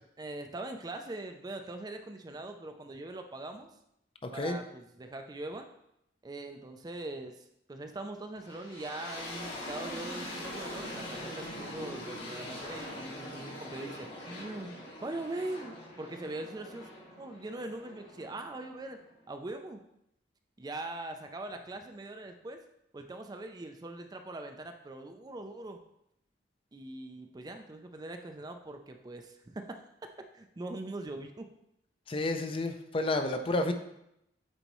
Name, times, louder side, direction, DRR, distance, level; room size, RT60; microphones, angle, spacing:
voice 1, 0.2-3.7 4.3-5.7 6.2-14.7 15.0-16.9 17.2-19.0 19.3-19.8 20.6-22.6 22.9-25.8 26.7-29.8 30.3-31.5, right 2 dB, 20° right, 6 dB, 0.4 m, -41 dB
voice 2, 4.2-4.6 32.1-33.7, left 2 dB, 30° left, 7 dB, 0.5 m, -30 dB
sound 1, 8.4-19.3, left 1 dB, 85° left, 2.6 m, -43 dB
8.9 x 4.1 x 3.0 m, 0.80 s
head